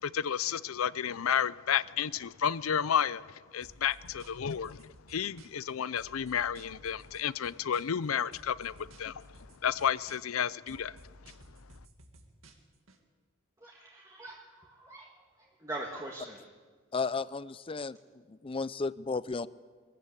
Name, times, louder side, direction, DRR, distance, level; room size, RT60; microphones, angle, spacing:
voice 1, 0.0-11.0, left 8 dB, 90° left, 0.5 m, -32 dB
sound 1, 3.6-5.7 6.0-8.1 8.3-10.4 10.7-13.0, right 1 dB, 70° right, 2.3 m, -55 dB
voice 2, 13.6-16.4, right 2 dB, 15° right, 1.8 m, -43 dB
voice 3, 16.9-18.0 18.3-19.5, left 4 dB, 25° left, 0.5 m, -33 dB
22.0 x 14.5 x 8.4 m
head